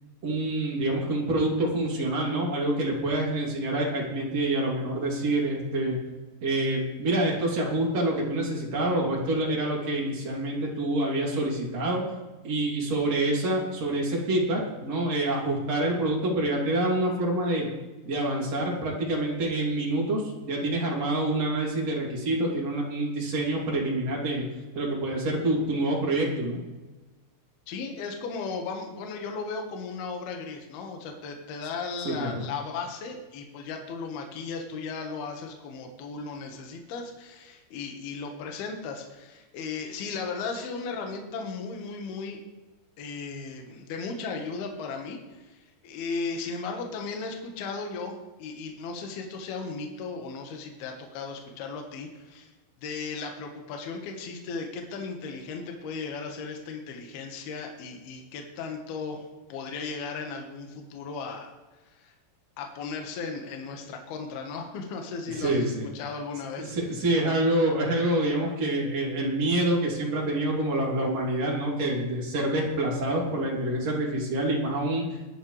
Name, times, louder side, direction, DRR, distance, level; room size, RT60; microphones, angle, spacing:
voice 1, 0.2-6.0 6.4-12.0 12.4-17.7 18.1-24.5 24.7-26.6 32.1-32.4 65.4-65.9 66.6-75.2, right 1 dB, 40° right, -3 dB, 3.6 m, -27 dB
voice 2, 27.7-42.4 43.0-52.5 52.8-61.5 61.9-62.1 62.6-65.7 65.9-66.7, left 4 dB, 65° left, 3 dB, 3.1 m, -36 dB
19.0 x 11.5 x 3.3 m, 1.2 s
omnidirectional pair, 5.1 m